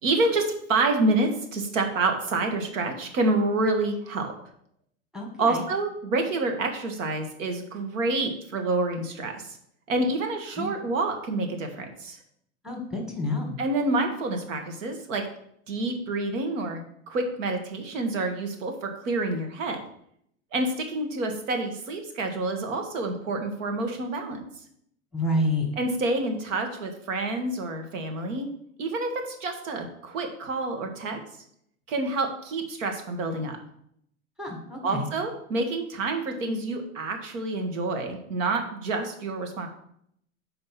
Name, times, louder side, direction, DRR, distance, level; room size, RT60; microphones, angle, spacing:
voice 1, 0.0-4.3 5.4-9.6 9.9-12.2 13.6-15.2 15.7-16.8 17.1-19.8 20.5-24.4 25.8-28.5 28.8-31.2 31.9-33.6 34.8-39.7, right 2 dB, 70° right, 5 dB, 1.6 m, -28 dB
voice 2, 5.1-5.6 10.6-10.7 12.6-13.6 25.1-25.7 34.4-35.1, left 1 dB, ahead, 1 dB, 1.6 m, -28 dB
5.2 x 4.4 x 5.8 m, 0.70 s
hypercardioid pair, 105°, 40 cm